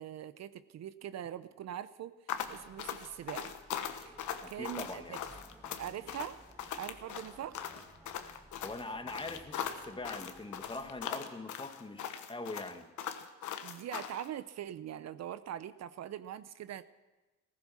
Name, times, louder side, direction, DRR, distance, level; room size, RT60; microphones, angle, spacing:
voice 1, 0.0-2.1 2.5-3.5 4.1-4.2 4.5-5.2 5.8-6.4 6.7-7.6 13.6-16.8, right 11 dB, 60° right, 14 dB, 0.6 m, -42 dB
sound 1, 2.3-14.3, left 9 dB, 75° left, 1.2 m, -40 dB
sound 2, 2.3-11.0, right 1 dB, 10° right, 3.6 m, -59 dB
voice 2, 4.4-5.2 8.6-12.9, left 2 dB, 15° left, 8 dB, 1.3 m, -43 dB
15.5 x 15.0 x 6.1 m, 1.1 s
cardioid pair, 90°, 30 cm